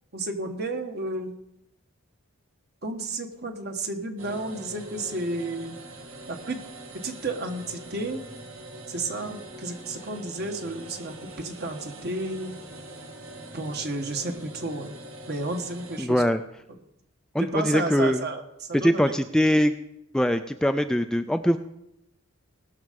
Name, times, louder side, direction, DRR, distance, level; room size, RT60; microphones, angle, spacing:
voice 1, 0.1-1.4 2.8-5.8 6.3-6.6 7.0-8.2 8.9-12.5 13.5-14.9 15.3-16.2 17.4-19.0, right 2 dB, 50° right, 5 dB, 1.4 m, -32 dB
sound 1, 4.2-16.0, right 1 dB, 65° right, 2.0 m, -43 dB
voice 2, 16.0-16.4 17.3-18.2 18.7-19.7 20.1-21.6, equal, 5° left, 8 dB, 0.3 m, -22 dB
19.0 x 6.6 x 5.2 m, 0.85 s
head